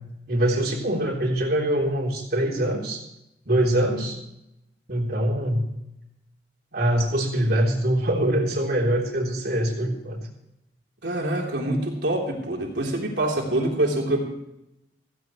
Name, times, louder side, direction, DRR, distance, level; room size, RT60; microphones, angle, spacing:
voice 1, 0.3-3.0 3.5-4.2 4.9-5.7 6.7-10.2, right 1 dB, 60° right, -3 dB, 3.6 m, -23 dB
voice 2, 11.0-14.2, right 1 dB, 85° right, -1 dB, 3.8 m, -25 dB
17.0 x 16.0 x 3.2 m, 0.85 s
head